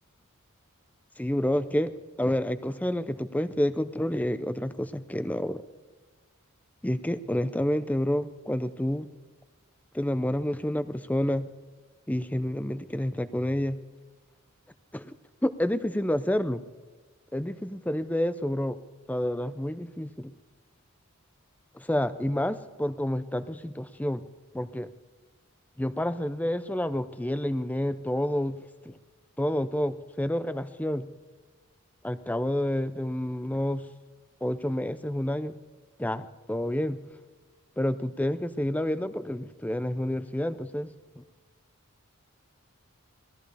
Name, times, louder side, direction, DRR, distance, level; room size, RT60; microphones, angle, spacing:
voice 1, 1.2-1.9 2.2-5.6 6.8-9.1 9.9-11.5 12.1-13.8 14.9-15.1 15.4-16.6 17.3-18.8 19.1-20.3 21.7-24.2 24.5-24.9 25.8-28.6 28.8-29.0 29.4-31.1 32.0-33.9 34.4-35.6 36.0-37.0 37.8-41.2, left 1 dB, 5° left, 12 dB, 0.5 m, -29 dB
19.0 x 13.5 x 3.4 m, 1.3 s
head